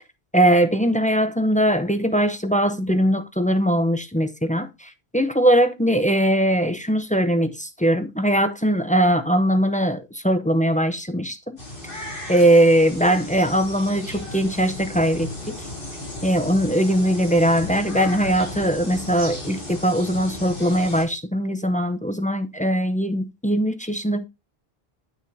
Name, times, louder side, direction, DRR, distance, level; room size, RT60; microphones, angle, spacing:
voice 1, 0.3-11.6 12.3-15.6 16.2-24.2, right 1 dB, 10° left, 0.5 m, -20 dB
sound 1, 11.6-21.0, left 1 dB, 55° left, 3.4 m, -35 dB
9.5 x 8.1 x 2.7 m
omnidirectional pair, 1.1 m